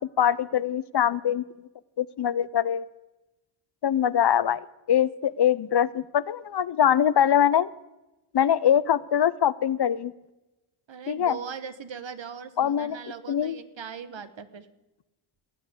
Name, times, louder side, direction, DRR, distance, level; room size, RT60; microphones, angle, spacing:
voice 1, 0.2-1.7 2.0-2.9 3.8-7.7 8.3-10.1 11.1-11.4 12.6-13.0 13.3-13.6, left 9 dB, 55° left, 18 dB, 0.6 m, -23 dB
voice 2, 10.9-14.7, right 6 dB, 60° right, 12 dB, 1.2 m, -39 dB
17.0 x 8.3 x 8.0 m, 1.0 s
cardioid pair, 45°, 50 cm